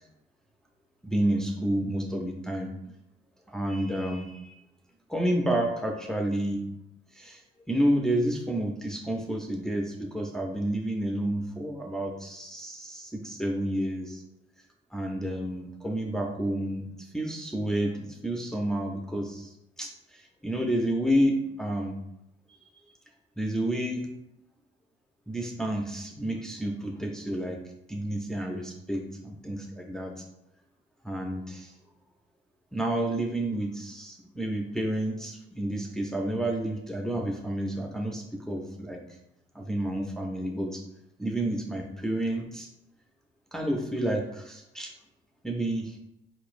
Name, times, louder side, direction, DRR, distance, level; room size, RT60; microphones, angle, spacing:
voice 1, 1.0-2.7 3.5-4.5 5.1-6.7 7.1-7.4 7.7-14.2 14.9-22.0 23.4-24.1 25.3-27.6 27.9-30.2 31.0-31.7 32.7-39.0 39.5-40.8 41.2-42.7 43.5-44.9 45.4-46.0, right 1 dB, 5° left, 1 dB, 0.5 m, -30 dB
4.3 x 3.0 x 2.5 m, 0.82 s
cardioid pair, 90°, 20 cm